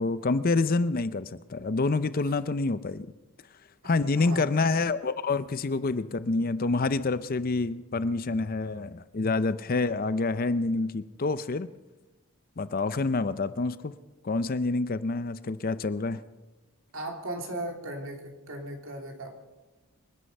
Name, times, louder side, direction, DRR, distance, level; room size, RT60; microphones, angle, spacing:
voice 1, 0.0-3.1 3.8-11.7 12.6-13.9 14.2-16.2, left 3 dB, 40° left, 14 dB, 0.5 m, -27 dB
voice 2, 3.8-4.5 16.9-19.4, right 1 dB, 60° right, 2 dB, 2.9 m, -37 dB
26.5 x 9.9 x 5.4 m, 1.1 s
head